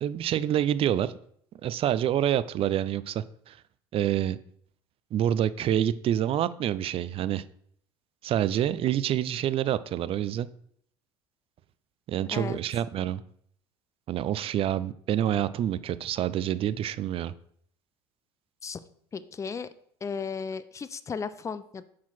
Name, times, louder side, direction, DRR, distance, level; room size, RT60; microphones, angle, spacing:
voice 1, 0.0-1.1 1.6-3.6 3.9-4.4 5.1-7.4 8.2-10.5 12.1-13.2 14.1-17.3, right 11 dB, 40° right, 16 dB, 0.4 m, -27 dB
voice 2, 19.1-19.7 20.0-21.8, left 5 dB, 20° left, 14 dB, 0.5 m, -35 dB
5.6 x 4.7 x 5.8 m, 0.65 s
hypercardioid pair, 70°, 14 cm